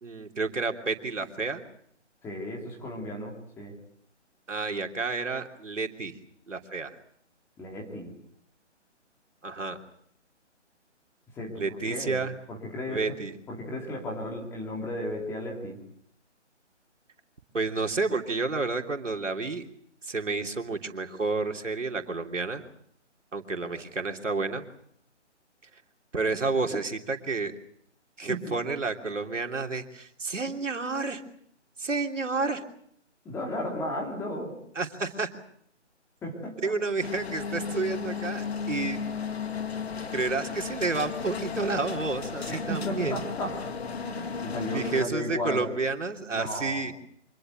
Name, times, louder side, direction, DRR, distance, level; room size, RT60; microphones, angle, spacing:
voice 1, 0.0-1.6 4.5-6.1 6.5-7.0 9.4-9.8 11.6-12.3 12.9-13.3 17.5-19.6 20.0-22.6 23.3-24.7 26.1-27.5 28.2-31.2 31.8-32.6 34.7-35.3 36.6-39.0 40.1-43.2 44.7-46.9, right 3 dB, 90° right, 4 dB, 3.2 m, -30 dB
voice 2, 2.2-3.7 7.6-8.1 11.4-13.1 13.5-15.8 28.3-28.6 33.2-34.6 36.2-36.7 42.5-43.7 44.0-45.7 46.3-46.8, left 1 dB, 5° left, 0 dB, 2.7 m, -35 dB
sound 1, 37.0-45.1, left 5 dB, 60° left, 2.2 m, -34 dB
25.5 x 20.5 x 7.7 m, 0.68 s
figure-of-eight pair, 160°, 36 cm